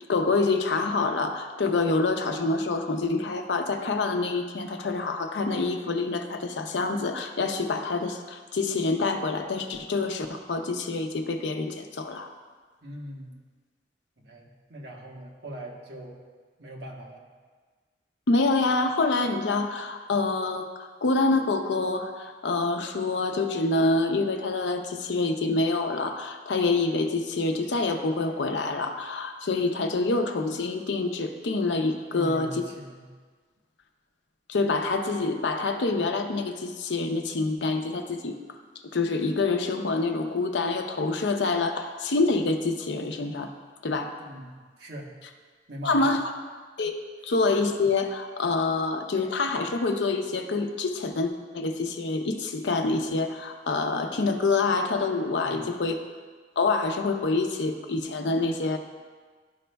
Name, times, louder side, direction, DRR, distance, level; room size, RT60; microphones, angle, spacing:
voice 1, 0.1-12.3 18.3-32.5 34.5-38.4 38.9-43.5 43.8-44.2 45.8-46.3 46.8-47.0 47.2-56.0 56.6-58.8, left 3 dB, 90° left, 5 dB, 0.6 m, -26 dB
voice 2, 12.8-13.4 14.2-16.2 16.6-17.3 32.1-33.1 44.2-45.1 45.7-46.1 55.4-55.7, right 1 dB, 70° right, -1 dB, 1.2 m, -41 dB
12.0 x 5.2 x 2.3 m, 1.5 s
head